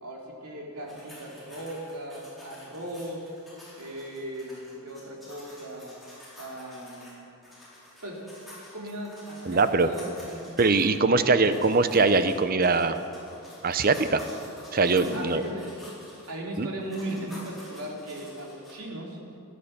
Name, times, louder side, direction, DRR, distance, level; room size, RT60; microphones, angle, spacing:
voice 1, 0.0-3.3 3.8-5.9 6.4-7.4 8.0-8.3 8.5-10.7 11.0-11.7 15.1-15.7 16.3-19.2, right 1 dB, 85° right, -2 dB, 3.1 m, -38 dB
sound 1, 0.9-7.2 7.4-11.0 11.4-16.3 16.8-18.7, left 1 dB, ahead, 4.2 m, -49 dB
voice 2, 9.5-9.9 10.6-13.0 13.6-14.2 14.7-15.4 16.6-16.7, right 3 dB, 40° right, 11 dB, 0.6 m, -22 dB
16.0 x 11.0 x 6.6 m, 2.6 s
head